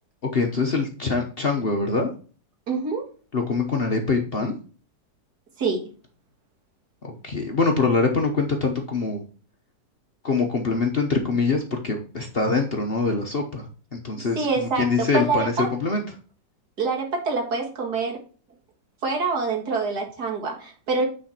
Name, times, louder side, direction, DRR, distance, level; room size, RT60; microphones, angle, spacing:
voice 1, 0.3-2.1 3.3-4.5 7.0-9.2 10.2-16.2, left 4 dB, 45° left, 3 dB, 0.9 m, -24 dB
voice 2, 2.7-3.0 5.6-5.8 14.4-15.7 16.8-18.2 19.0-21.1, right 4 dB, 65° right, 1 dB, 2.3 m, -25 dB
9.0 x 4.3 x 4.3 m, 0.39 s
omnidirectional pair, 1.8 m